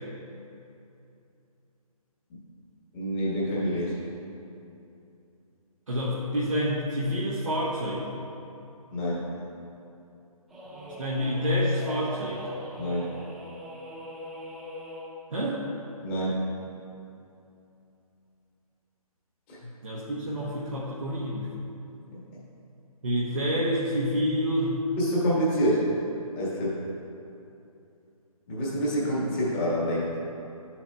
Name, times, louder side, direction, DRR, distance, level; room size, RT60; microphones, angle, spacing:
voice 1, 2.9-4.0 8.9-9.2 12.8-13.1 16.0-16.4 19.5-19.6 22.1-22.2 25.0-25.9 26.4-26.8 28.5-30.1, equal, 20° left, -7 dB, 1.5 m, -27 dB
voice 2, 5.9-8.0 11.0-12.5 15.3-15.6 19.8-21.5 23.0-24.8, equal, 60° right, -7 dB, 1.1 m, -28 dB
sound 1, 10.5-15.2, left 1 dB, ahead, 1.2 m, -41 dB
11.5 x 7.2 x 2.3 m, 2.7 s
figure-of-eight pair, 145°, 19 cm